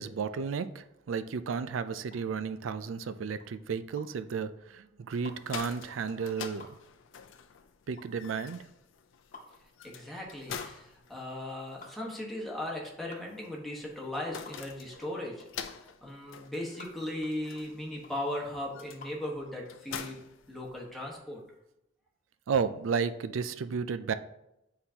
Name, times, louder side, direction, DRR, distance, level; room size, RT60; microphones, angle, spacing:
voice 1, 0.0-6.7 7.9-8.6 22.5-24.1, right 6 dB, 85° right, 12 dB, 0.4 m, -33 dB
sound 1, 2.0-19.3, left 3 dB, 40° left, 1.1 m, -53 dB
sound 2, 5.2-21.2, left 7 dB, 80° left, 0.5 m, -47 dB
voice 2, 9.8-20.2 20.5-21.4, left 1 dB, ahead, -3 dB, 1.3 m, -38 dB
9.5 x 3.8 x 2.8 m, 0.85 s
head